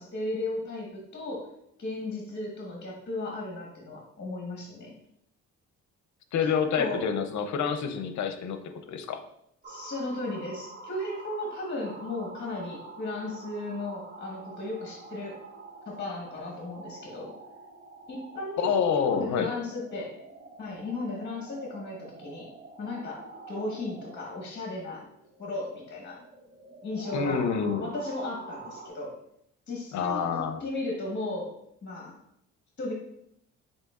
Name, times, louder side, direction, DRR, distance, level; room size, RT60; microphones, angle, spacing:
voice 1, 0.0-1.5 1.8-4.9 6.4-7.0 9.7-15.4 15.9-17.3 18.1-20.1 20.6-22.5 22.8-25.0 25.4-26.2 26.8-27.4 27.8-29.1 29.7-31.5 31.8-32.2 32.8-32.9, left 2 dB, 35° left, -2 dB, 1.3 m, -35 dB
voice 2, 6.3-9.2 18.6-19.5 27.1-27.9 29.9-30.6, left 6 dB, 70° left, 7 dB, 0.7 m, -28 dB
sound 1, 9.6-28.9, right 3 dB, 35° right, 0.7 m, -47 dB
7.5 x 2.8 x 2.4 m, 0.75 s
cardioid pair, 90°, 30 cm